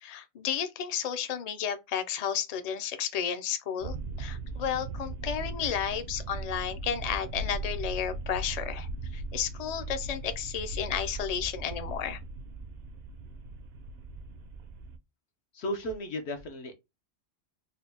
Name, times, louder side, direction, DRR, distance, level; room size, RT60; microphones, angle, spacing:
voice 1, 0.0-12.2, left 8 dB, 45° left, 0.5 m, -32 dB
sound 1, 3.8-15.0, right 2 dB, 70° right, 0.8 m, -38 dB
voice 2, 15.5-16.7, equal, 70° left, 1.1 m, -34 dB
3.9 x 2.2 x 3.4 m
omnidirectional pair, 1.2 m